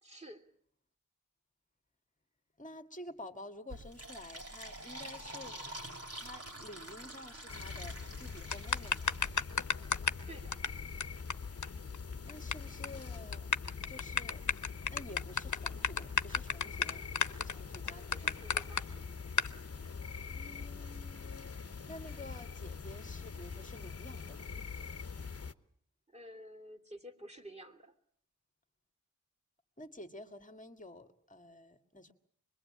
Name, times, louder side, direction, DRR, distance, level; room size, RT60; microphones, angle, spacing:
voice 1, 0.0-0.5 10.3-10.6 17.8-19.1 26.1-27.9, equal, 20° right, 5 dB, 3.1 m, -51 dB
voice 2, 2.6-5.6 6.2-9.2 12.2-13.5 13.9-14.4 14.9-18.4 20.2-21.5 21.9-24.5 29.8-32.1, left 1 dB, 25° left, 8 dB, 2.0 m, -50 dB
Fill (with liquid), 3.7-9.4, right 1 dB, 50° right, 5.1 m, -47 dB
sound 1, 7.5-25.5, left 5 dB, 50° left, 1.1 m, -44 dB
sound 2, 8.5-10.2 10.5-10.7 11.0-11.1 11.3-11.4 11.6-11.7 11.9-12.5 12.8-13.0 13.3-18.8 19.4-19.5, left 6 dB, 70° left, 1.0 m, -31 dB
25.5 x 22.0 x 8.7 m, 0.62 s
wide cardioid pair, 80°, 30 cm